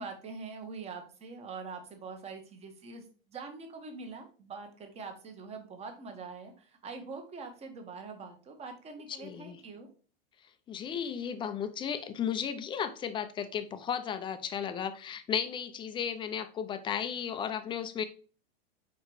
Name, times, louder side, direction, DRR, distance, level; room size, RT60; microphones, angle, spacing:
voice 1, 0.0-9.9, right 4 dB, 20° right, 1.2 m, -44 dB
voice 2, 9.2-9.6 10.7-18.0, left 8 dB, 15° left, 0.5 m, -34 dB
4.7 x 4.6 x 4.7 m
supercardioid pair, 135°, 30 cm